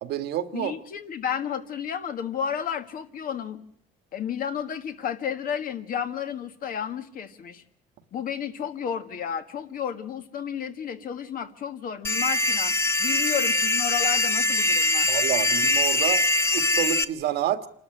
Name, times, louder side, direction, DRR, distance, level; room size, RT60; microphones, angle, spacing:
voice 1, 0.0-0.8 15.1-16.2 16.5-17.6, right 11 dB, 75° right, 10 dB, 1.6 m, -28 dB
voice 2, 0.5-3.6 4.1-7.6 8.1-12.7 13.0-15.1, left 8 dB, 55° left, 9 dB, 1.7 m, -32 dB
sound 1, 12.0-17.0, left 2 dB, 15° left, 0.9 m, -23 dB
27.0 x 12.5 x 9.9 m, 0.66 s
cardioid pair, 110°, 17 cm